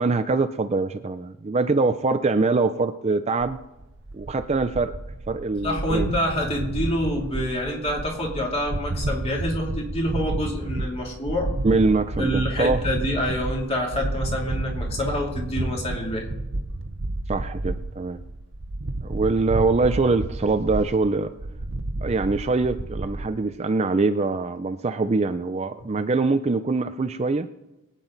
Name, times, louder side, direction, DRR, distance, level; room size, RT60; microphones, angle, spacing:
voice 1, 0.0-3.6 4.1-4.9 5.3-6.1 11.6-12.8 17.3-18.2 19.0-21.3 22.0-27.5, right 3 dB, 30° right, 10 dB, 0.4 m, -23 dB
sound 1, 3.4-23.2, right 2 dB, 55° right, 0.9 m, -31 dB
voice 2, 5.6-11.5 12.2-16.3, equal, 25° left, -1 dB, 2.8 m, -27 dB
22.0 x 9.1 x 3.9 m, 0.98 s
head